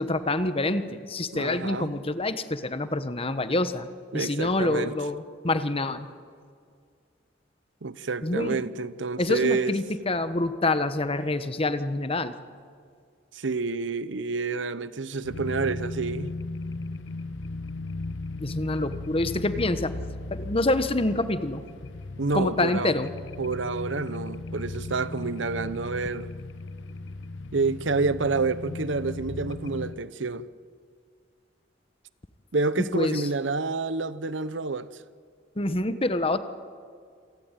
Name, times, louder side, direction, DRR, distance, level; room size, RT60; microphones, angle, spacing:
voice 1, 0.0-3.9 4.1-6.1 8.2-8.6 9.2-12.3 18.4-19.9 20.3-21.6 22.3-23.1 32.9-33.2 35.6-36.4, left 2 dB, 30° left, 1.2 m, -26 dB
voice 2, 1.3-1.9 4.1-4.9 7.8-9.7 13.3-16.3 22.2-23.0 23.4-26.3 27.5-30.5 32.5-34.9, right 3 dB, 85° right, 0.9 m, -28 dB
sound 1, 15.2-29.9, left 2 dB, 85° left, 0.9 m, -36 dB
27.0 x 17.5 x 9.1 m
head